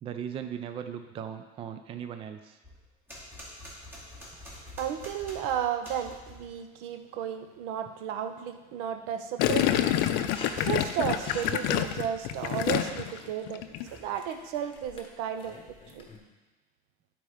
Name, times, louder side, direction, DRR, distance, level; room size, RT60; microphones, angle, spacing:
voice 1, 0.0-2.6, right 8 dB, 30° right, 7 dB, 0.4 m, -38 dB
sound 1, 2.6-6.5 9.6-12.9 13.6-14.2, left 1 dB, 10° right, 2.3 m, -47 dB
voice 2, 4.8-9.9 10.6-13.6 13.9-15.6 15.9-16.1, right 9 dB, 75° right, 7 dB, 0.8 m, -33 dB
Gurgling, 9.4-13.2 13.5-13.9, left 12 dB, 65° left, 0.5 m, -27 dB
sound 2, 10.3-16.2, left 3 dB, 25° left, 1.2 m, -47 dB
10.5 x 4.3 x 4.9 m, 1.1 s
cardioid pair, 145°, 20 cm